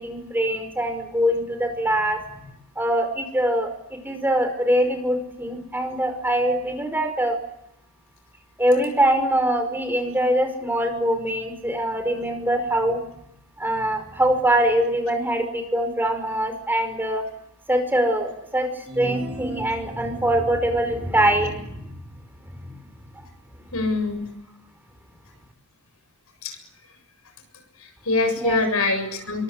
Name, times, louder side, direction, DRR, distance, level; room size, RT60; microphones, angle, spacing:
voice 1, 0.0-2.4 2.8-7.4 8.6-13.0 13.6-17.2 17.7-18.7 19.0-21.9 22.5-22.8 28.4-28.6, right 1 dB, 10° right, 6 dB, 5.4 m, -23 dB
sound 1, 18.9-20.4, right 2 dB, 25° right, 7.3 m, -35 dB
voice 2, 23.7-24.3 26.4-26.6 27.8-29.4, left 3 dB, 75° left, 7 dB, 7.3 m, -24 dB
29.5 x 24.0 x 8.3 m, 0.80 s
head